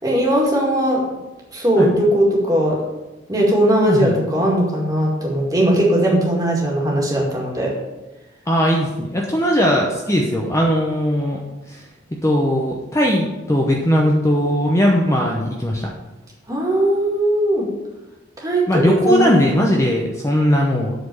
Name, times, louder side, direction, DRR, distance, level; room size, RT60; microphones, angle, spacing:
voice 1, 0.0-1.0 1.5-2.8 3.3-7.7 16.5-17.7 18.4-19.4, right 1 dB, 20° right, -3 dB, 2.1 m, -18 dB
voice 2, 3.9-4.2 8.5-11.4 11.7-11.9 12.2-15.9 18.7-20.9, equal, 15° left, -1 dB, 0.7 m, -18 dB
7.9 x 4.3 x 6.9 m, 1.1 s
head